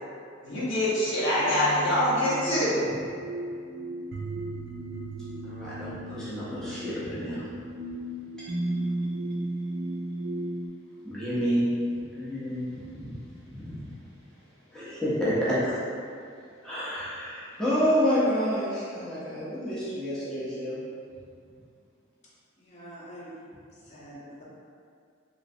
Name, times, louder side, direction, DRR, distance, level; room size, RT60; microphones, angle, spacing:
voice 1, 0.4-2.9, left 1 dB, 65° left, -9 dB, 1.0 m, -25 dB
sound 1, 1.4-10.7, right 1 dB, 50° right, 0.5 m, -35 dB
voice 2, 5.4-7.5 8.4-8.5 11.0-11.6 12.1-13.2 13.4-13.9 14.7-15.9 16.6-20.8, equal, 5° left, -12 dB, 0.6 m, -29 dB
voice 3, 22.6-23.4 23.8-24.4, right 1 dB, 35° left, -8 dB, 0.8 m, -45 dB
3.2 x 3.1 x 2.6 m, 2.3 s
head